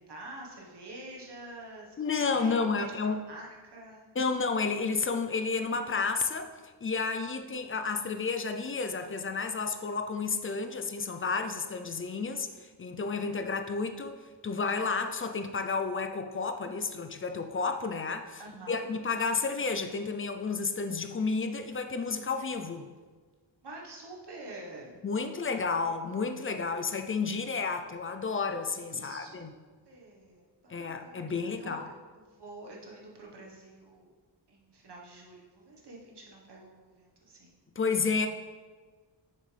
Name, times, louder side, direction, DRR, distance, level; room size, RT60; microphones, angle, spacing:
voice 1, 0.0-1.9 2.3-2.6 3.0-4.1 13.0-13.1 18.4-18.9 23.6-24.9 25.4-25.6 28.9-29.6 29.9-31.2 31.5-31.8 32.1-34.1 34.5-37.6, right 2 dB, 65° right, -2 dB, 1.4 m, -47 dB
voice 2, 2.0-3.2 4.2-6.5 6.8-14.2 14.4-18.4 18.7-22.9 25.0-29.5 30.7-31.9 37.8-38.3, left 4 dB, 30° left, 7 dB, 0.4 m, -31 dB
7.0 x 6.7 x 3.3 m, 1.4 s
wide cardioid pair, 140°, 43 cm